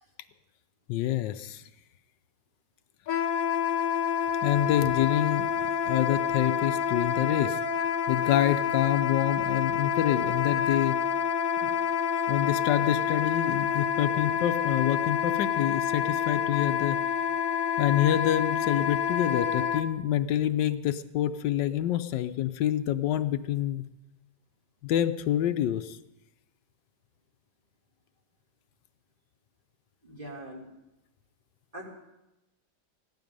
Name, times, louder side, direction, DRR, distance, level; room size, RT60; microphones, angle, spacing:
voice 1, 0.9-1.6 4.4-7.6 8.1-11.0 11.6-11.8 12.3-17.0 17.8-23.8 24.8-26.0, left 12 dB, 80° left, 10 dB, 1.3 m, -27 dB
Wind instrument woodwind instrument, 3.1-19.8, left 7 dB, 60° left, 1.0 m, -28 dB
voice 2, 30.0-30.7 31.7-31.9, right 1 dB, 30° right, -2 dB, 3.0 m, -42 dB
15.5 x 12.0 x 5.3 m, 0.93 s
omnidirectional pair, 1.9 m